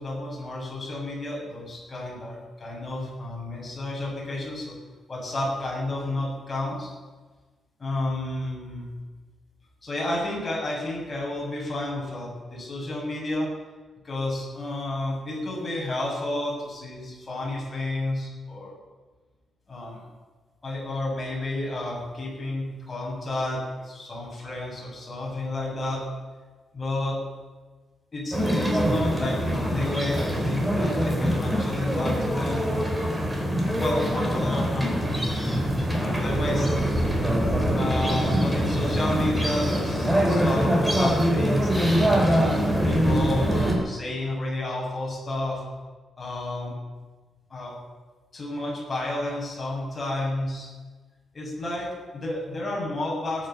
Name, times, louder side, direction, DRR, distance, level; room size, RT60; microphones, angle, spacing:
voice 1, 0.0-4.7 5.1-6.9 7.8-8.9 9.8-13.5 14.0-18.7 19.7-20.0 20.6-26.1 26.7-27.2 28.1-33.0 33.7-35.5 36.0-36.7 37.7-42.0 42.4-45.6 46.2-46.8 47.5-47.7 48.3-50.7 51.3-53.5, left 1 dB, 25° left, -4 dB, 7.1 m, -31 dB
sound 1, 28.3-43.8, equal, 10° right, 3.2 m, -24 dB
20.0 x 9.2 x 7.0 m, 1.3 s
cardioid pair, 135°, 0 cm